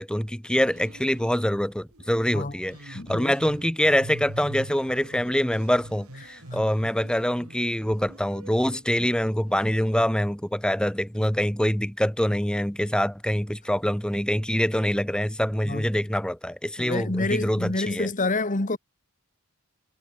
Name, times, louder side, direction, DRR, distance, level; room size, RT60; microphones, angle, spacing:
voice 1, 0.0-18.1, equal, 5° left, 2.0 m, -25 dB
sound 1, 0.7-1.6 1.9-8.9 9.5-9.6, right 1 dB, 75° right, 3.6 m, -43 dB
voice 2, 2.9-3.3 15.6-15.9 16.8-18.8, left 2 dB, 35° left, 1.5 m, -28 dB
head